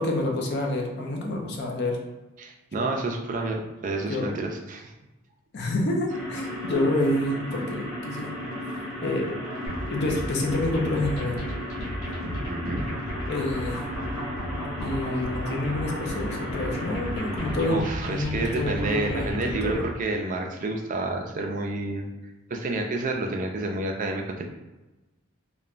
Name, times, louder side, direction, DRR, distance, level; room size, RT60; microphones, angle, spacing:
voice 1, 0.0-2.0 2.7-2.9 4.1-4.3 5.5-8.3 9.0-9.4 9.9-11.4 13.3-13.8 14.8-19.8, left 2 dB, 50° left, 0 dB, 0.5 m, -28 dB
voice 2, 2.4-4.9 12.5-12.9 17.7-22.1 22.5-24.4, right 2 dB, 40° right, 2 dB, 0.3 m, -29 dB
sound 1, 6.1-17.8, left 1 dB, 5° right, 0.8 m, -35 dB
sound 2, 9.7-20.0, equal, 85° left, 0.9 m, -34 dB
3.0 x 2.2 x 2.4 m, 1.1 s
head